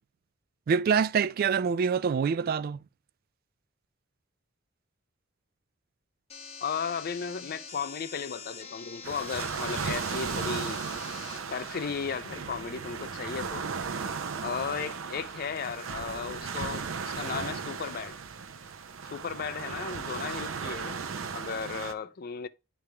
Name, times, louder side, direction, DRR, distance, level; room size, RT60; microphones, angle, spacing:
voice 1, 0.7-2.8, right 6 dB, 50° right, 0.3 m, -25 dB
sound 1, 6.3-11.4, left 6 dB, 35° left, 1.3 m, -45 dB
voice 2, 6.6-10.8 11.5-13.7 14.4-18.2 19.0-21.0 21.3-22.5, left 6 dB, 50° left, 0.4 m, -35 dB
sound 2, 9.0-21.9, right 5 dB, 85° right, 0.6 m, -36 dB
9.5 x 3.4 x 3.3 m
head